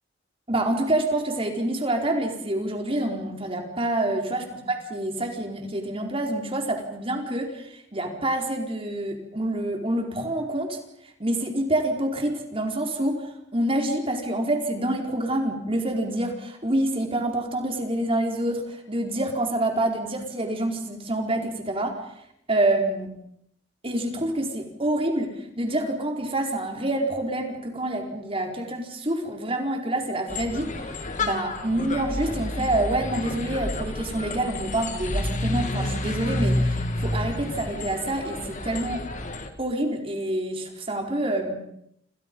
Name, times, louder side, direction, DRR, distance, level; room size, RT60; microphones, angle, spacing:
voice 1, 0.5-10.8 11.2-22.0 22.5-23.1 23.8-30.7 31.2-39.0 39.6-41.5, right 1 dB, 30° right, 3 dB, 4.5 m, -27 dB
sound 1, 30.3-39.5, left 1 dB, 40° left, 2.6 m, -29 dB
29.5 x 28.5 x 5.5 m, 0.74 s
head